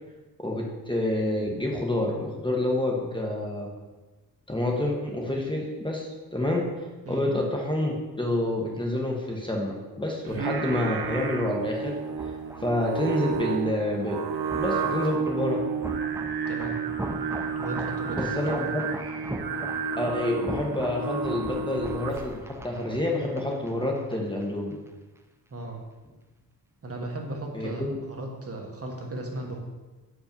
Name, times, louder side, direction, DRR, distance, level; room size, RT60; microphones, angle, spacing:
voice 1, 0.4-3.7 4.5-6.6 7.1-12.3 12.6-14.2 14.6-15.6 18.1-18.9 20.0-24.8 27.5-28.0, left 1 dB, 15° left, -1 dB, 1.0 m, -28 dB
Singing, 10.2-22.4, right 6 dB, 85° right, 0.7 m, -31 dB
sound 1, 11.3-24.5 24.7-24.9, right 1 dB, 5° right, 0.4 m, -40 dB
voice 2, 17.6-18.4 25.5-25.8 26.8-27.8 28.2-29.6, right 1 dB, 40° right, 0 dB, 1.2 m, -35 dB
6.4 x 5.0 x 5.3 m, 1.2 s
wide cardioid pair, 125°, 37 cm